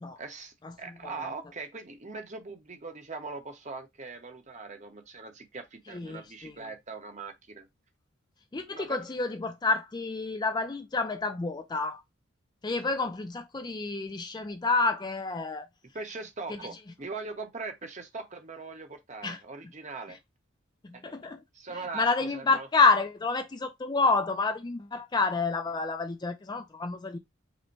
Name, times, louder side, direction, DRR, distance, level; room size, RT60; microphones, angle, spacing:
voice 1, 0.2-7.7 8.8-9.0 15.9-20.2 20.9-21.1 21.5-22.7, right 3 dB, 35° right, 0.9 m, -41 dB
voice 2, 5.9-6.7 8.5-12.0 12.6-15.7 16.5-16.6 19.2-19.4 20.1-20.2 20.8-21.4 21.9-27.2, left 3 dB, 20° left, 0.4 m, -29 dB
5.1 x 2.1 x 4.5 m
head